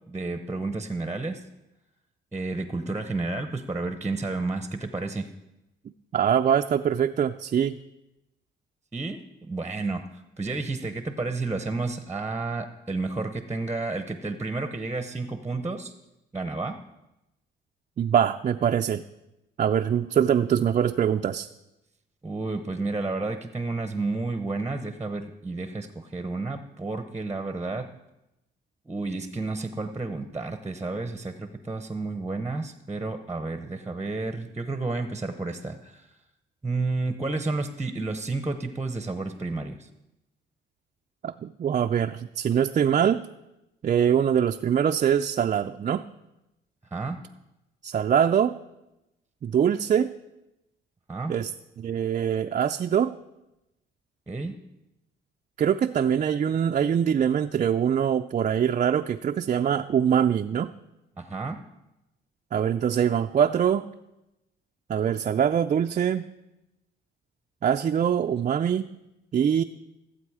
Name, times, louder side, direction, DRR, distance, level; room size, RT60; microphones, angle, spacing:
voice 1, 0.1-1.4 2.3-5.3 8.9-15.9 16.3-16.8 22.2-27.8 28.9-36.1 36.6-39.9 46.9-47.2 51.1-51.4 54.3-54.6 61.2-61.6, right 3 dB, 10° right, 8 dB, 0.8 m, -31 dB
voice 2, 6.1-7.8 18.0-19.0 19.6-21.5 41.2-43.2 43.8-46.1 47.8-48.6 49.4-50.1 51.3-51.5 51.8-53.2 55.6-60.7 62.5-63.9 64.9-66.3 67.6-68.9 69.3-69.6, right 8 dB, 40° right, 6 dB, 0.4 m, -23 dB
15.5 x 8.0 x 4.8 m, 0.95 s
cardioid pair, 90°, 20 cm